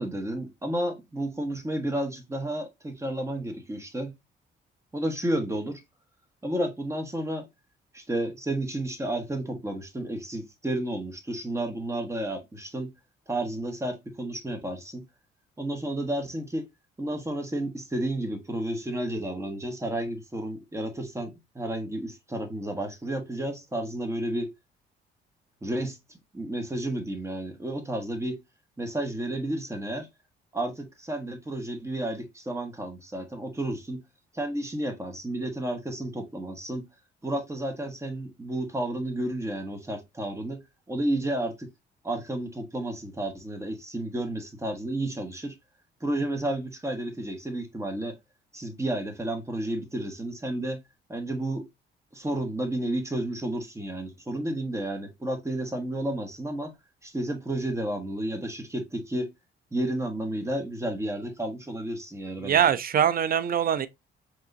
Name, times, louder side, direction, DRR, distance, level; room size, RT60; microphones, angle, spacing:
voice 1, 0.0-4.2 4.9-5.8 6.4-7.5 7.9-12.9 13.3-15.1 15.6-16.7 17.0-24.5 25.6-26.0 26.3-28.4 28.8-30.1 30.5-34.0 34.3-36.9 37.2-41.7 42.0-45.6 46.0-48.2 48.5-50.8 51.1-51.6 52.1-56.7 57.0-59.3 59.7-62.6, right 1 dB, 15° right, 1.4 m, -31 dB
voice 2, 62.4-63.9, right 9 dB, 50° right, 0.5 m, -23 dB
4.6 x 3.6 x 2.7 m
cardioid pair, 90°, 20 cm